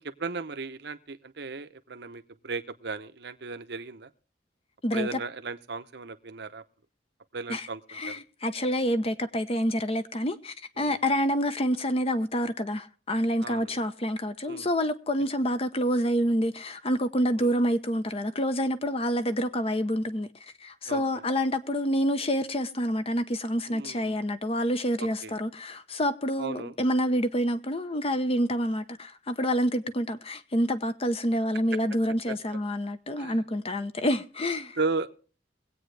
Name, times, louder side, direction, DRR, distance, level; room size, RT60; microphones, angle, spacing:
voice 1, 0.0-4.1 4.9-6.6 7.3-7.8 8.1-8.2 10.8-11.0 13.4-13.8 14.4-14.7 17.4-17.5 20.9-21.0 23.7-24.2 25.0-25.3 26.4-26.7 32.3-32.6 33.2-33.4 34.8-35.1, right 4 dB, 65° right, 0.9 m, -35 dB
voice 2, 4.8-5.2 7.5-20.3 20.6-34.8, equal, 35° left, 0.9 m, -27 dB
22.5 x 8.6 x 3.3 m
head